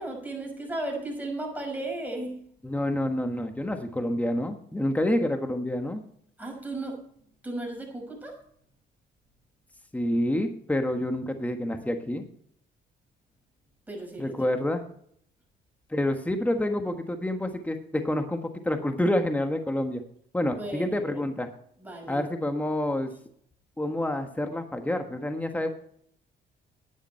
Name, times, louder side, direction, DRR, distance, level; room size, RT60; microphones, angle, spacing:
voice 1, 0.0-2.4 6.4-7.0 7.4-8.4 13.9-14.4 20.6-21.2 21.8-22.3, right 2 dB, 10° right, 0 dB, 5.9 m, -35 dB
voice 2, 2.6-6.0 9.9-12.2 14.2-14.8 15.9-20.0 20.3-21.5 22.1-23.1 23.8-25.7, left 1 dB, 5° left, 6 dB, 1.4 m, -28 dB
10.5 x 10.0 x 4.4 m, 0.64 s
cardioid pair, 90°, 20 cm